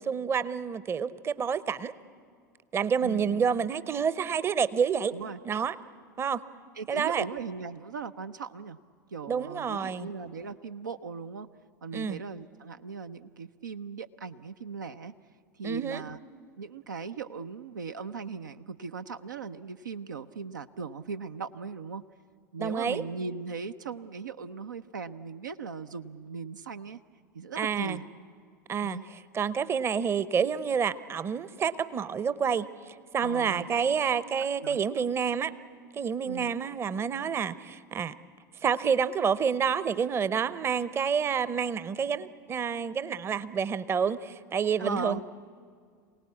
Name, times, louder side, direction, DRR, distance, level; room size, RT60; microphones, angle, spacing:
voice 1, 0.0-1.9 2.7-5.2 5.4-5.8 6.2-6.4 6.9-7.2 9.3-10.1 11.9-12.2 15.6-16.0 22.6-23.0 27.6-28.0 28.7-29.0 29.3-35.5 35.9-38.1 38.6-45.2, right 6 dB, 25° right, 16 dB, 0.8 m, -28 dB
voice 2, 3.0-3.4 5.1-5.4 6.8-8.8 9.1-11.5 11.8-15.1 15.5-16.2 16.6-22.0 22.5-27.0 27.3-28.0 28.8-29.0 33.2-33.7 34.6-34.8 36.3-36.5 44.8-45.2, right 5 dB, 80° right, 9 dB, 0.6 m, -38 dB
26.5 x 18.0 x 8.4 m, 2.1 s
figure-of-eight pair, 80°, 10 cm